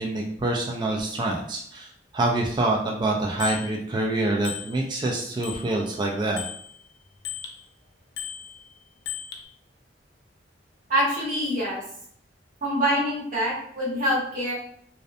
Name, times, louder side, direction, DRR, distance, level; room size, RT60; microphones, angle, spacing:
voice 1, 0.0-1.9 2.1-6.4, right 2 dB, 25° right, 0 dB, 0.3 m, -26 dB
Bicycle bell, 3.4-3.7 4.4-5.1 5.4-7.6 8.2-9.4, left 9 dB, 85° left, 0.4 m, -37 dB
voice 2, 10.9-11.8 12.6-14.5, equal, 45° right, -6 dB, 1.0 m, -25 dB
2.6 x 2.1 x 2.4 m, 0.65 s
head